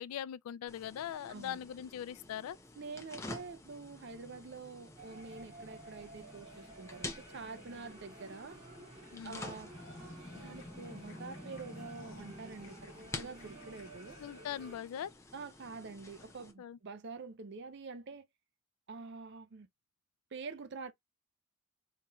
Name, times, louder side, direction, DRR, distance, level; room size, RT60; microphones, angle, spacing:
voice 1, 0.0-2.6 9.1-9.4 14.2-15.1 16.6-16.8, left 10 dB, 85° left, 0.3 m, -41 dB
sound 1, 0.7-16.5, left 2 dB, 15° left, 0.6 m, -49 dB
voice 2, 1.3-1.6 2.7-8.6 9.2-9.7 10.3-14.2 15.3-18.3 18.9-19.7 20.3-20.9, right 4 dB, 55° right, 0.5 m, -46 dB
sound 2, 5.0-14.8, right 2 dB, 25° right, 2.0 m, -53 dB
sound 3, 9.0-15.3 15.7-15.8 16.2-16.3, left 4 dB, 65° left, 1.0 m, -61 dB
4.1 x 3.0 x 2.2 m
head